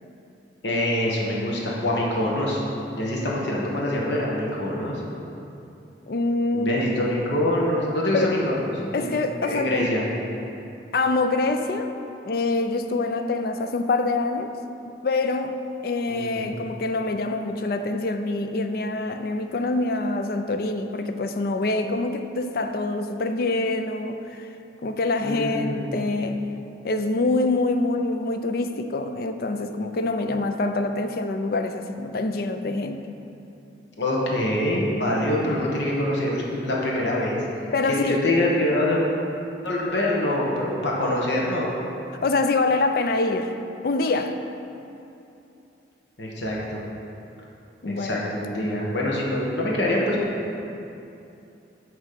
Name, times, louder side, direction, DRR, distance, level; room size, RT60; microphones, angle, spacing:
voice 1, 0.6-2.6 3.0-5.0 6.5-9.1 9.4-10.0 16.1-16.5 25.2-25.9 34.0-37.4 37.8-39.0 39.6-41.7 46.2-46.8 47.8-50.2, left 1 dB, 75° left, -3 dB, 1.2 m, -25 dB
voice 2, 6.1-6.8 8.1-8.3 8.9-9.9 10.9-11.9 12.2-14.6 14.9-24.5 24.8-26.5 26.8-33.0 37.7-38.2 42.2-44.4 47.8-48.2, left 2 dB, 55° left, 7 dB, 0.4 m, -25 dB
8.8 x 3.1 x 6.6 m, 2.8 s
head